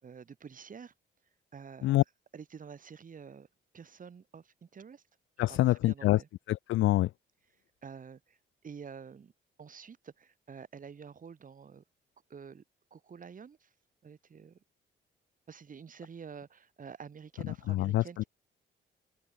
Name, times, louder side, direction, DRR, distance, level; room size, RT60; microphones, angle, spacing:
voice 1, 0.0-0.9 1.5-2.0 2.3-3.5 3.7-5.0 5.5-6.3 7.8-8.4 8.6-9.3 9.6-11.8 12.3-12.6 12.9-13.7 14.0-14.6 15.5-18.3, right 6 dB, 45° right, 3.8 m, -48 dB
voice 2, 5.4-6.2 6.5-7.1 17.7-18.2, left 16 dB, 80° left, 0.6 m, -26 dB
open air
cardioid pair, 90°, 20 cm